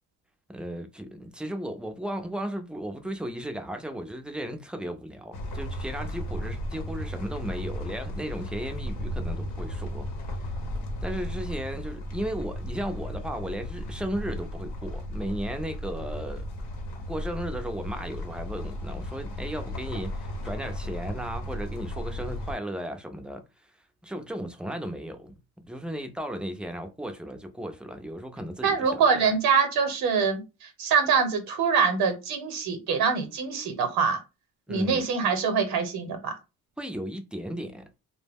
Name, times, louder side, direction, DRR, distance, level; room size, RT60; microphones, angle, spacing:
voice 1, 0.5-10.1 11.0-16.4 17.1-23.4 24.0-25.3 25.6-29.0 34.7-35.0 36.8-38.0, equal, 5° right, 0.3 m, -35 dB
sound 1, 5.3-22.5, left 1 dB, 85° left, 0.8 m, -35 dB
voice 2, 28.6-34.2 34.7-36.3, right 5 dB, 75° right, 0.8 m, -24 dB
2.1 x 2.1 x 3.4 m
cardioid pair, 100°, 37 cm